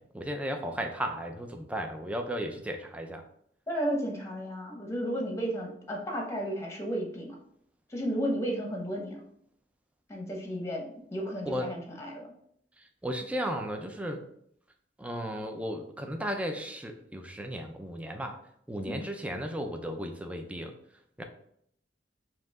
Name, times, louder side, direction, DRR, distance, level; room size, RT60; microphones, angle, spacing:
voice 1, 0.0-3.2 11.5-11.7 12.8-14.2 15.0-18.4 18.7-20.7 21.2-21.3, equal, 5° right, 4 dB, 0.4 m, -35 dB
voice 2, 3.7-7.4 7.9-9.2 10.1-12.3 18.8-19.1, equal, 15° left, 0 dB, 0.9 m, -33 dB
4.5 x 2.9 x 3.6 m, 0.69 s
head